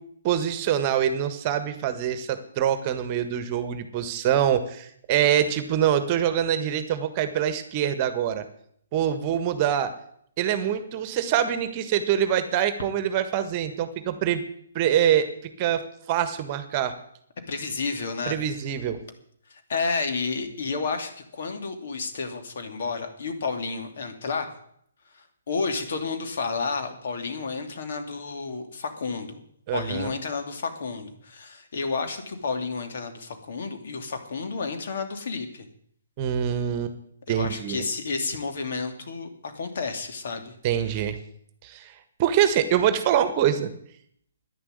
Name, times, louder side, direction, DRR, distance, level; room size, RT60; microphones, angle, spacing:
voice 1, 0.2-8.4 8.9-9.9 10.4-14.4 14.7-15.3 15.6-15.8 16.1-16.9 18.3-19.0 29.7-30.1 36.2-36.9 37.3-37.8 40.6-41.2 41.6-41.9 42.2-43.7, right 10 dB, 30° right, 10 dB, 1.6 m, -24 dB
voice 2, 17.5-18.4 19.7-24.5 25.5-29.4 29.7-35.7 37.3-40.5, left 4 dB, 55° left, 5 dB, 2.8 m, -31 dB
11.0 x 10.5 x 9.7 m, 0.68 s
figure-of-eight pair, 130°, 0 cm